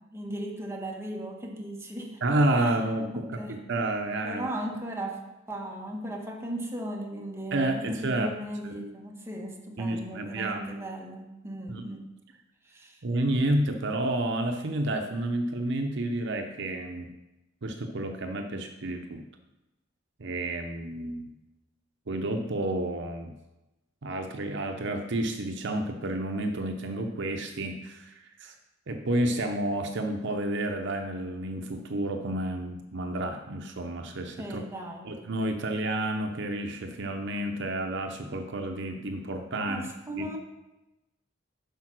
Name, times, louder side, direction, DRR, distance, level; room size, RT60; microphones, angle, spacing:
voice 1, 0.1-2.4 3.1-3.6 4.2-5.2 5.5-12.1 12.7-13.0 34.4-35.1 39.7-40.4, right 1 dB, 15° right, 0 dB, 1.4 m, -37 dB
voice 2, 2.2-4.5 7.5-8.3 8.6-8.7 9.8-10.7 11.7-11.8 13.0-17.1 17.6-19.2 20.2-21.3 22.1-23.3 24.0-28.5 28.9-34.6 35.0-39.9 40.2-40.3, right 1 dB, 65° right, 5 dB, 0.8 m, -30 dB
10.5 x 4.8 x 6.1 m, 1.0 s
head